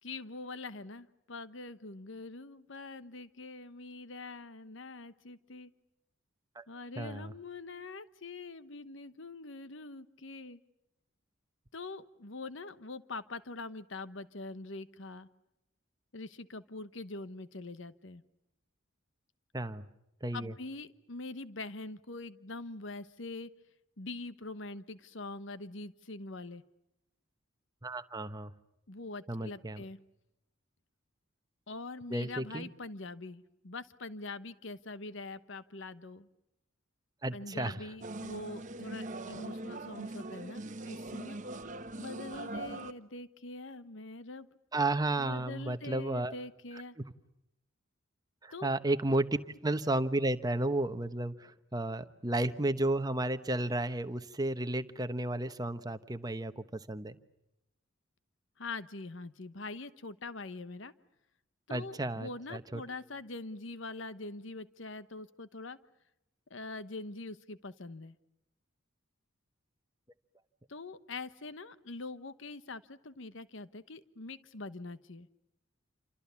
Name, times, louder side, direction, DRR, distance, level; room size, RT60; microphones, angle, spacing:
voice 1, 0.0-5.7 6.7-10.6 11.7-15.3 16.1-18.2 20.3-23.5 24.0-26.6 28.9-30.0 31.7-36.3 37.3-41.4 42.0-44.5 45.2-47.0 48.5-48.7 58.6-60.9 61.7-65.8 66.5-68.2 70.7-75.3, left 3 dB, 60° left, 14 dB, 1.0 m, -44 dB
voice 2, 7.0-7.3 19.5-19.9 20.2-20.5 27.8-28.5 29.3-29.8 32.1-32.7 37.2-37.8 44.7-46.3 48.4-49.4 49.6-57.2 61.7-62.8, right 2 dB, 20° right, 10 dB, 1.0 m, -33 dB
sound 1, 38.0-42.9, right 2 dB, 35° right, 1.2 m, -41 dB
28.5 x 26.5 x 7.1 m, 0.87 s
head